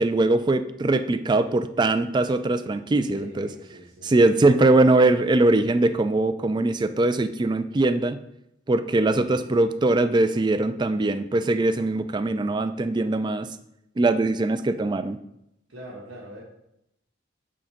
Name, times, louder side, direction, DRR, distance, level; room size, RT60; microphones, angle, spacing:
voice 1, 0.0-3.5 4.0-8.2 8.7-13.5 14.0-15.2, right 2 dB, 25° right, 11 dB, 0.3 m, -21 dB
voice 2, 3.1-4.1 9.0-9.4 15.7-16.4, equal, 90° right, -4 dB, 1.4 m, -43 dB
6.3 x 3.7 x 5.8 m, 0.82 s
head